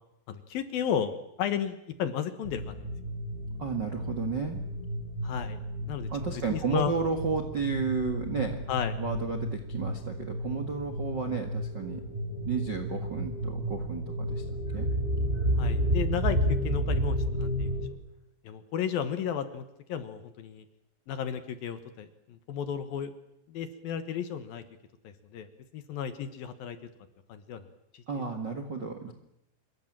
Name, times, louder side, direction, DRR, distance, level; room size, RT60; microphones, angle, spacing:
voice 1, 0.3-2.8 5.2-5.6 5.9-6.1 6.5-6.9 8.7-8.9 15.6-17.7 18.4-20.6 21.1-23.1 23.5-24.6 25.0-25.5 25.7-26.8 27.3-27.6 27.9-28.0, left 8 dB, 65° left, 10 dB, 2.9 m, -33 dB
sound 1, 2.4-17.9, equal, 15° right, 4.2 m, -32 dB
voice 2, 3.6-4.6 6.1-8.6 9.0-12.0 12.4-14.9 15.3-15.4 28.1-29.1, right 5 dB, 45° right, 6 dB, 1.3 m, -32 dB
27.0 x 22.5 x 7.5 m, 0.82 s
omnidirectional pair, 5.1 m